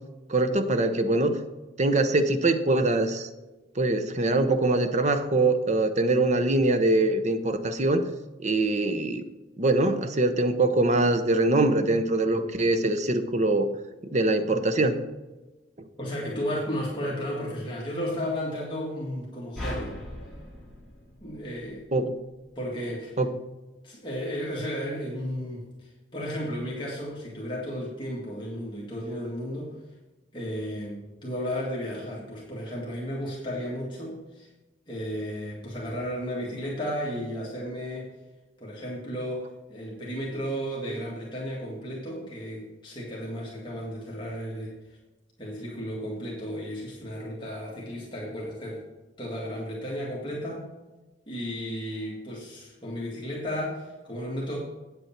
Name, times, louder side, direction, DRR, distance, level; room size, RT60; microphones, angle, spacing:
voice 1, 0.3-1.3 1.8-3.3 3.8-8.0 8.4-9.2 9.6-13.7 14.0-15.0 21.9-22.1 23.2-23.3, right 2 dB, 40° right, 9 dB, 0.8 m, -23 dB
voice 2, 16.0-19.9 21.2-21.9 22.6-23.2 23.8-29.8 30.3-34.5 34.9-38.1 38.6-44.8 45.4-48.8 49.2-50.7 51.3-54.6, equal, 25° left, -5 dB, 1.9 m, -34 dB
sound 1, 19.6-22.0, left 1 dB, 5° left, 2.6 m, -38 dB
8.6 x 8.0 x 4.4 m, 1.1 s
head